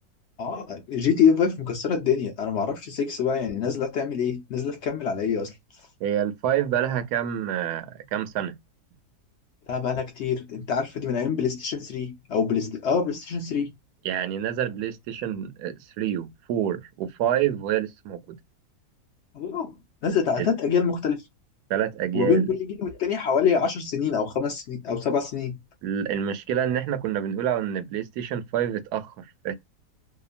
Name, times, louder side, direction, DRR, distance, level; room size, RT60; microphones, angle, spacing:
voice 1, 0.4-5.5 9.7-13.7 19.3-19.7 20.0-21.2 22.1-25.6, left 6 dB, 75° left, 0.6 m, -25 dB
voice 2, 6.0-8.6 14.0-18.4 20.4-20.5 21.7-22.5 25.8-29.5, right 10 dB, 80° right, 1.1 m, -27 dB
2.8 x 2.3 x 2.4 m
omnidirectional pair, 1.7 m